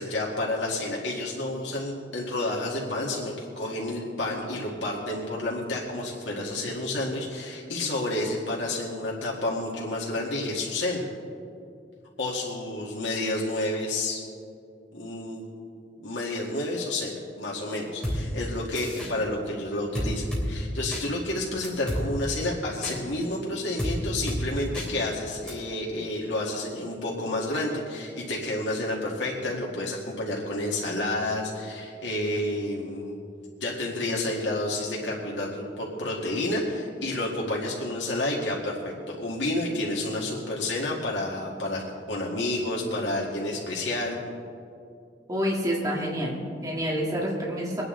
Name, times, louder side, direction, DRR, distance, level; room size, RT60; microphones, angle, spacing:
voice 1, 0.0-11.1 12.2-14.2 14.9-15.4 16.0-33.2 33.6-44.2, left 1 dB, 85° left, -3 dB, 2.0 m, -30 dB
sound 1, 18.0-18.2 18.8-19.1 20.0-20.5 20.9-21.0 21.6-22.0 22.8-23.0 23.8-23.9 24.3-24.4 24.8-24.9 25.5-25.6, equal, 5° left, 3.2 m, -30 dB
voice 2, 45.3-47.8, equal, 20° right, -4 dB, 1.9 m, -28 dB
23.5 x 9.7 x 3.9 m, 2.4 s
head